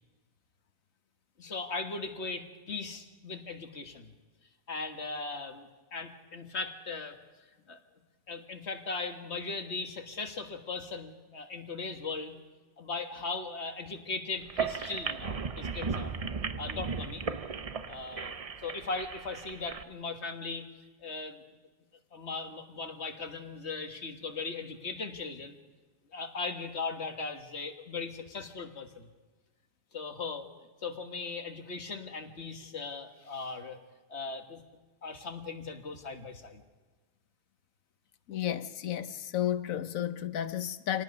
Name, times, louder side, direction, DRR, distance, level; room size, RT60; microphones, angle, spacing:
voice 1, 1.4-4.1 4.7-7.2 7.7-7.8 8.3-12.4 12.8-16.1 16.6-17.2 17.9-18.3 18.6-20.7 21.0-21.4 22.1-25.6 26.1-29.1 29.9-30.5 30.8-33.8 34.1-34.6 35.0-36.6, left 4 dB, 55° left, 1.9 m, -38 dB
sound 1, 14.4-19.8, right 5 dB, 40° right, 0.6 m, -36 dB
voice 2, 38.3-41.0, left 11 dB, 90° left, 1.3 m, -32 dB
27.0 x 18.5 x 5.4 m
omnidirectional pair, 1.4 m